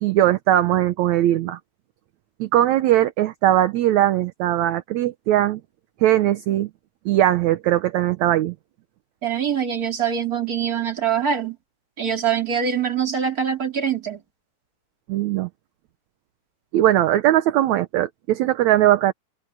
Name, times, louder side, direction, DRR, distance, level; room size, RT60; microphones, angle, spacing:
voice 1, 0.0-1.6 2.4-5.6 6.0-6.7 7.1-8.5 15.1-15.5 16.7-19.1, right 13 dB, 70° right, 2.1 m, -19 dB
voice 2, 9.2-11.6 12.0-14.2, right 7 dB, 30° right, 3.3 m, -24 dB
omnidirectional pair, 3.6 m